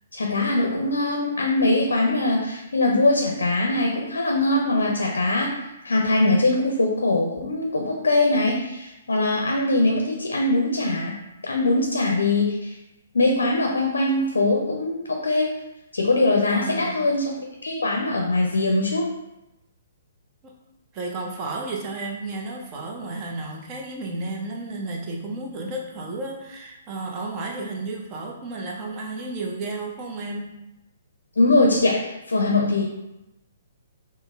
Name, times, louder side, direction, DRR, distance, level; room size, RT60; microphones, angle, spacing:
voice 1, 0.1-5.5 5.8-11.1 11.4-12.7 13.1-15.5 15.9-17.3 17.6-19.0 31.4-32.8, left 2 dB, 65° left, 0 dB, 0.5 m, -22 dB
voice 2, 16.5-17.1 20.4-20.6 20.9-30.5, right 2 dB, 25° right, -1 dB, 0.6 m, -32 dB
5.2 x 2.1 x 2.4 m, 0.92 s
figure-of-eight pair, 125°, 0 cm